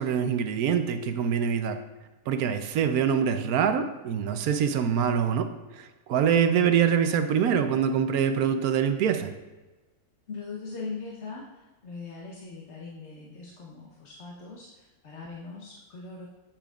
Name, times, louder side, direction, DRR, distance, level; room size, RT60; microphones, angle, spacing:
voice 1, 0.0-1.8 2.3-5.5 5.8-9.3, right 7 dB, 80° right, 8 dB, 1.1 m, -24 dB
voice 2, 10.3-16.3, left 4 dB, 55° left, -3 dB, 1.2 m, -40 dB
8.8 x 8.5 x 2.4 m, 1.2 s
omnidirectional pair, 1.6 m